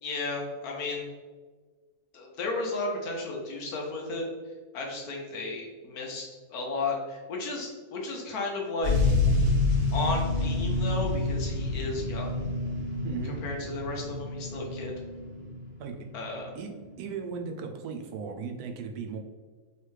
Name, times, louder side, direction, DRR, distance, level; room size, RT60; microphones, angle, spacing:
voice 1, 0.0-1.1 2.1-4.2 4.7-8.9 9.9-12.4 13.2-14.9 16.1-16.5, left 2 dB, 80° left, 0 dB, 1.3 m, -34 dB
sound 1, 8.8-16.3 17.0-17.1, left 3 dB, 30° right, 1.3 m, -28 dB
voice 2, 13.0-13.4 15.8-16.0 16.5-16.7 17.0-19.2, right 5 dB, 90° right, 3 dB, 1.1 m, -36 dB
3.5 x 3.2 x 3.2 m, 1.4 s
omnidirectional pair, 1.6 m